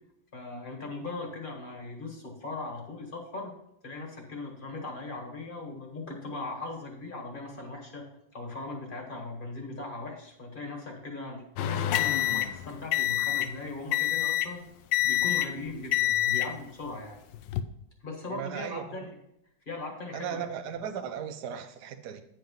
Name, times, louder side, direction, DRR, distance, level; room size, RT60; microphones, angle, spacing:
voice 1, 0.3-3.5 3.8-8.0 8.3-14.6 15.0-17.2 18.0-19.1 19.6-20.6, left 2 dB, 30° left, 1.7 m, -39 dB
sound 1, 11.6-13.6 13.9-14.6 14.9-15.6 15.9-16.5 17.3-17.6, left 12 dB, 80° left, 1.2 m, -27 dB
voice 2, 18.3-19.0 20.1-22.2, right 8 dB, 65° right, 1.2 m, -36 dB
9.3 x 4.7 x 5.3 m
omnidirectional pair, 2.0 m